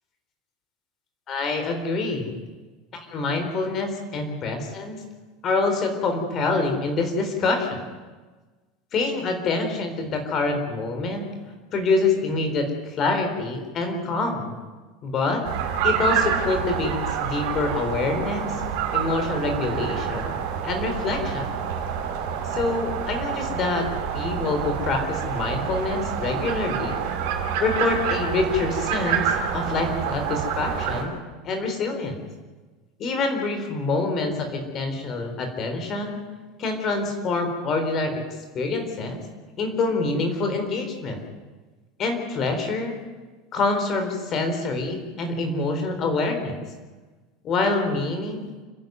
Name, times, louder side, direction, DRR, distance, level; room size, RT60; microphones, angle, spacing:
voice 1, 1.3-2.4 2.9-5.0 5.4-7.8 8.9-11.3 11.7-14.5 15.0-15.4 15.8-18.6 18.9-20.3 20.6-21.6 22.5-23.9 24.1-27.0 27.6-31.1 31.4-32.2 33.0-36.2 36.6-38.2 38.5-39.2 39.6-41.2 42.0-42.9 43.5-46.6 47.4-48.5, left 3 dB, 25° left, 5 dB, 3.9 m, -26 dB
sound 1, 15.4-31.0, right 7 dB, 60° right, 5.7 m, -27 dB
29.5 x 11.0 x 9.4 m, 1.3 s
supercardioid pair, 175°, 0 cm